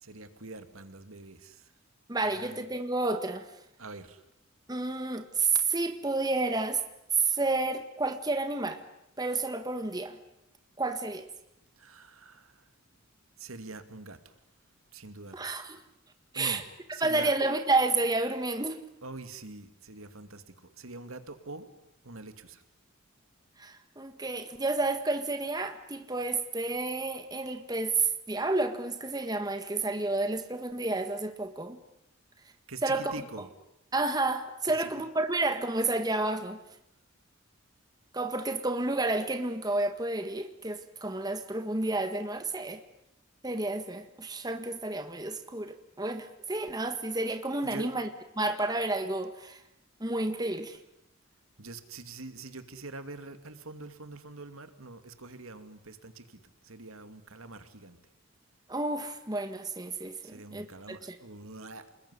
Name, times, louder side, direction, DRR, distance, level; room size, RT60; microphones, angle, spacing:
voice 1, 0.0-1.7 2.3-2.7 3.8-4.2 11.8-12.7 13.4-14.3 14.9-15.6 16.3-16.6 16.9-17.4 19.0-21.7 22.0-22.6 32.7-33.5 34.8-35.0 47.7-47.9 51.6-58.0 60.2-61.9, right 3 dB, 85° right, 9 dB, 2.5 m, -45 dB
voice 2, 2.1-3.5 4.7-6.8 7.1-8.8 9.2-10.2 10.8-11.3 15.3-15.8 16.3-16.6 17.0-18.8 23.6-31.8 32.8-33.1 33.9-36.6 38.1-42.8 43.4-48.1 48.4-49.6 50.0-50.8 58.7-61.2, right 2 dB, 20° right, 8 dB, 1.6 m, -30 dB
27.5 x 21.0 x 9.8 m, 0.81 s
head